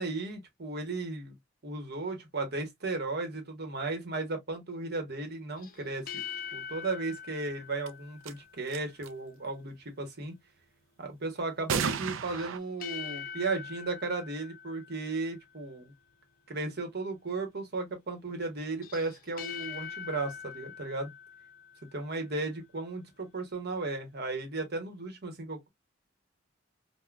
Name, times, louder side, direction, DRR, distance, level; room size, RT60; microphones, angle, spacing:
voice 1, 0.0-1.3 1.6-6.2 6.5-10.3 11.0-15.9 16.5-21.1 21.9-25.7, right 3 dB, 55° right, 1.0 m, -35 dB
sound 1, 5.6-8.9 12.3-15.6 18.7-22.3, left 7 dB, 45° left, 0.4 m, -43 dB
sound 2, 7.9-8.0 8.2-8.3 8.7-9.1 11.7-12.6, right 7 dB, 75° right, 0.4 m, -32 dB
3.6 x 2.1 x 2.3 m
head